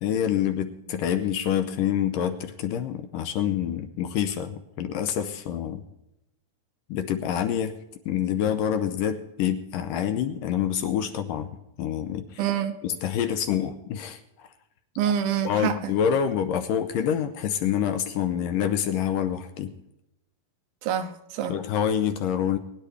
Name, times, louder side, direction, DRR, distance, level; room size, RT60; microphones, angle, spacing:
voice 1, 0.0-5.8 6.9-7.8 8.1-11.5 11.8-12.4 12.8-14.5 15.4-19.7 21.5-22.6, left 9 dB, 75° left, 2.2 m, -27 dB
voice 2, 12.4-12.7 15.0-15.9 20.8-21.6, right 9 dB, 80° right, 2.7 m, -26 dB
21.5 x 10.0 x 3.3 m
omnidirectional pair, 4.3 m